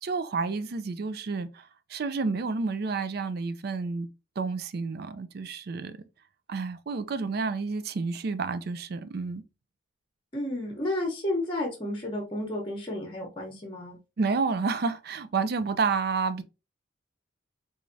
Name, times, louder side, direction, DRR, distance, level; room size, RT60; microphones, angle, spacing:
voice 1, 0.0-4.1 4.4-6.0 6.5-9.4 14.2-16.4, right 4 dB, 50° right, 0.4 m, -30 dB
voice 2, 10.3-14.0, left 1 dB, 25° left, 0.8 m, -32 dB
3.6 x 3.2 x 2.6 m
head